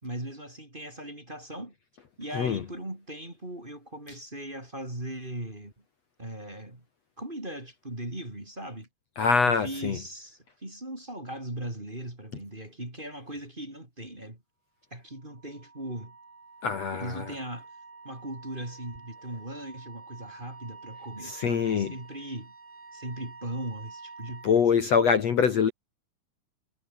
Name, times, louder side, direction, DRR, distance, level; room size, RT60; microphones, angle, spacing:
voice 1, 0.0-1.8 2.2-5.7 6.2-6.8 7.2-8.9 9.4-14.4 14.9-16.2 16.9-17.7 18.0-22.5 22.9-24.6, right 1 dB, 15° right, 4.0 m, -39 dB
voice 2, 9.2-10.0 16.6-17.3 21.2-21.9 24.4-25.7, left 6 dB, 50° left, 2.7 m, -24 dB
Wind instrument woodwind instrument, 15.1-24.6, right 4 dB, 65° right, 9.2 m, -48 dB
omnidirectional pair, 4.2 m